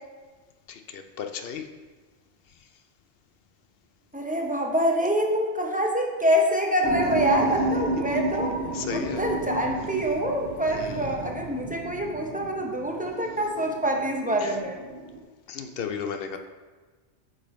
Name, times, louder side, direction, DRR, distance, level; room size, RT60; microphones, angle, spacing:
voice 1, 0.7-1.7 2.6-2.7 7.1-8.3 8.7-9.2 10.7-11.2 14.4-14.6 15.5-16.4, left 6 dB, 65° left, 7 dB, 0.7 m, -35 dB
voice 2, 4.1-8.6 8.9-14.8, equal, 10° right, 0 dB, 0.5 m, -25 dB
sound 1, 6.8-15.2, right 2 dB, 85° right, 1.2 m, -32 dB
8.2 x 5.2 x 3.1 m, 1.3 s
omnidirectional pair, 1.2 m